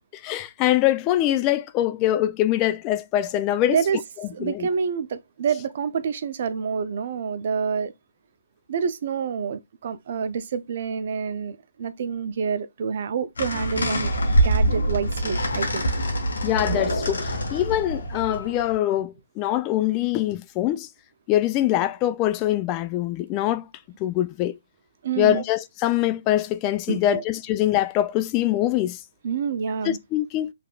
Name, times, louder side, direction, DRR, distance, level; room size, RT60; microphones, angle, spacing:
voice 1, 0.2-3.8 4.4-4.7 16.4-20.9 21.3-23.7 24.0-24.6 25.2-29.0 29.8-30.5, left 13 dB, 25° left, 0.3 m, -23 dB
voice 2, 3.7-4.0 4.3-7.9 8.7-15.8 25.0-25.4 26.9-27.2 29.2-30.0, right 6 dB, 50° right, 0.6 m, -27 dB
sound 1, 13.4-18.7, right 1 dB, 80° left, 1.7 m, -24 dB
5.8 x 3.4 x 2.3 m
hypercardioid pair, 145°, 0 cm